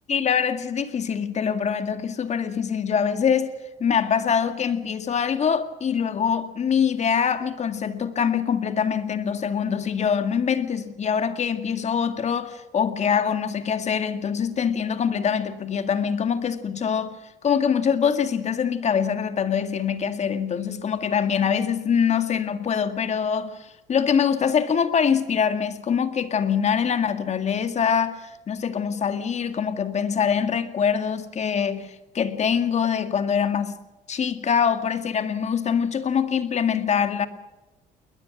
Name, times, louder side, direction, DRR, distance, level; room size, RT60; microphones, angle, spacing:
voice 1, 0.1-3.5 3.8-17.2 17.4-33.8 34.1-37.3, left 7 dB, 40° left, 2.0 m, -24 dB
21.0 x 20.5 x 6.1 m
cardioid pair, 110°, 17 cm